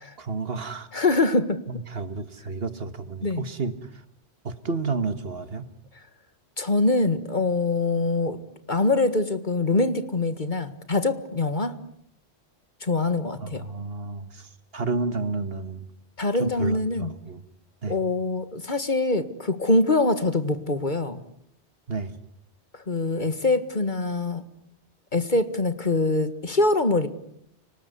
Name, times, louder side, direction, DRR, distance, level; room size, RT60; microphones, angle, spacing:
voice 1, 0.2-0.9 1.7-3.8 4.4-5.7 13.4-14.5 14.7-15.9 16.4-17.4 17.8-18.0 21.9-22.1, right 3 dB, 60° right, 13 dB, 1.8 m, -31 dB
voice 2, 0.9-1.6 3.2-3.4 6.6-8.4 8.7-11.8 12.8-13.7 16.2-17.1 17.9-21.2 22.9-24.4 25.1-27.1, left 2 dB, 45° left, 11 dB, 1.9 m, -24 dB
30.0 x 19.5 x 9.6 m, 0.70 s
omnidirectional pair, 1.1 m